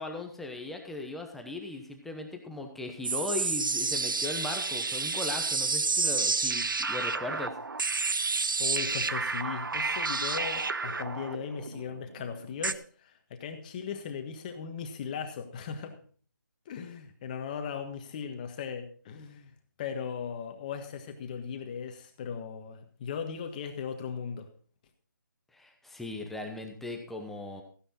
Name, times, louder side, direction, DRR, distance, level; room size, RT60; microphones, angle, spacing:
voice 1, 0.0-7.5 25.5-27.6, left 2 dB, ahead, 3 dB, 0.9 m, -38 dB
sound 1, 3.0-12.7, right 4 dB, 85° right, 0.7 m, -30 dB
voice 2, 8.6-16.0 16.6-24.5, left 7 dB, 25° left, 6 dB, 1.5 m, -38 dB
14.5 x 10.0 x 4.2 m, 0.43 s
figure-of-eight pair, 160°, 11 cm